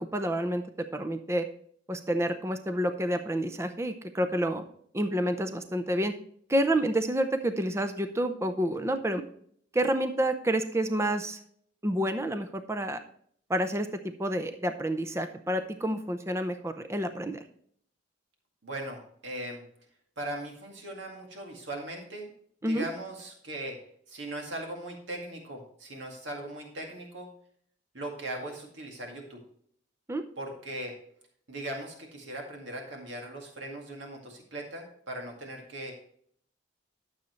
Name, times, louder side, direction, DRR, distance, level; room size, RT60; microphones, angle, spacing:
voice 1, 0.0-1.5 1.9-4.6 4.9-6.1 6.5-9.2 9.7-11.4 11.8-13.0 13.5-13.9 14.2-17.4 22.6-22.9 30.1-30.2, right 1 dB, 15° right, 8 dB, 0.6 m, -29 dB
voice 2, 18.6-19.6 20.2-22.3 22.7-23.8 24.1-27.3 27.9-29.4 30.4-30.9 31.5-35.9, right 1 dB, 85° right, 1 dB, 2.0 m, -39 dB
12.0 x 7.1 x 3.1 m, 0.62 s
head